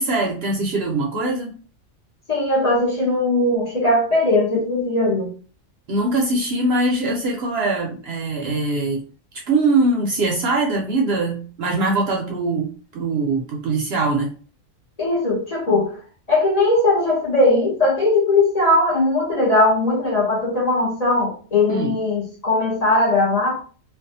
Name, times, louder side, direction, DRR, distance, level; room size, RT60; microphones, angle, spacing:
voice 1, 0.0-1.5 5.9-9.0 9.3-14.3 21.7-21.9, right 2 dB, 65° right, 0 dB, 0.7 m, -22 dB
voice 2, 2.3-5.3 15.0-16.0 16.3-23.6, left 2 dB, 35° left, -5 dB, 0.7 m, -19 dB
2.5 x 2.3 x 2.6 m, 0.39 s
omnidirectional pair, 1.4 m